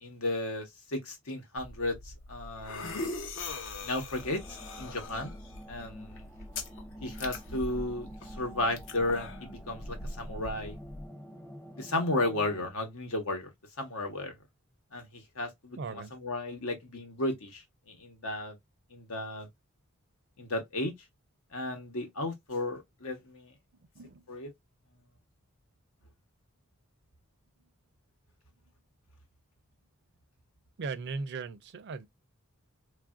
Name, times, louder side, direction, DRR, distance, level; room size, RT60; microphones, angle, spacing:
voice 1, 0.0-3.1 3.8-5.3 5.7-6.2 7.0-10.8 11.8-13.5 13.8-14.3 14.9-18.6 18.9-19.5 20.4-20.9 21.5-23.5 24.3-24.5, left 2 dB, 85° left, 1.0 m, -34 dB
sound 1, 1.6-11.1, left 2 dB, 65° left, 0.6 m, -42 dB
sound 2, 4.2-12.7, equal, 10° left, 0.5 m, -49 dB
voice 2, 15.8-16.1 23.9-24.2 30.8-32.1, right 4 dB, 55° right, 0.4 m, -38 dB
3.2 x 2.4 x 2.4 m
head